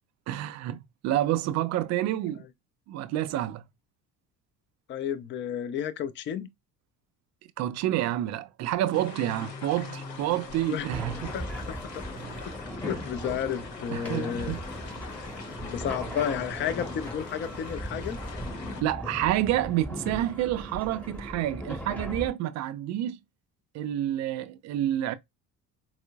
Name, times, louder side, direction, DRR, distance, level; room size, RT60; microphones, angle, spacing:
voice 1, 0.3-2.4 2.9-3.6 7.6-11.3 13.9-14.6 18.8-23.2 23.7-25.1, right 13 dB, 35° right, 0.4 m, -28 dB
voice 2, 4.9-6.5 10.7-10.9 11.3-11.8 12.5-12.6 12.8-14.5 15.6-18.2, left 9 dB, 25° left, 0.4 m, -32 dB
sound 1, 8.9-18.8, left 4 dB, 85° left, 0.8 m, -42 dB
sound 2, 10.9-22.3, equal, 5° left, 0.8 m, -38 dB
4.3 x 2.0 x 2.2 m
figure-of-eight pair, 55°, 48 cm